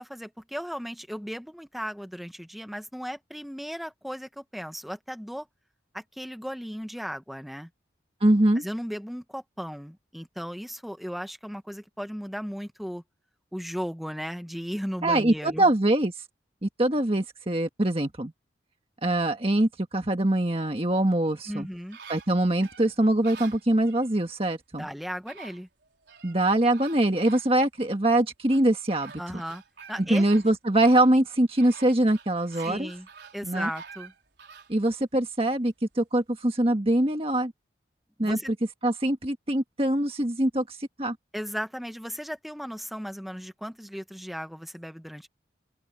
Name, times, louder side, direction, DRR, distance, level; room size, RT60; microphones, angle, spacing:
voice 1, 0.0-5.5 5.9-7.7 8.6-13.0 13.5-15.7 21.5-22.0 24.8-25.7 29.2-29.6 29.9-30.2 32.6-33.1 33.3-34.1 38.2-38.5 41.3-45.3, equal, ahead, 1.2 m, -36 dB
voice 2, 8.2-8.6 15.0-16.1 16.6-18.3 19.0-21.7 22.1-24.9 26.2-29.1 30.1-32.9 33.4-33.7 34.7-37.5 38.2-38.4 38.8-41.2, right 1 dB, 30° right, 1.6 m, -23 dB
sound 1, 21.2-24.1 24.9-25.0 25.3-26.4 26.7-27.9 28.5-34.7 35.2-35.3, right 5 dB, 75° right, 4.4 m, -48 dB
open air
head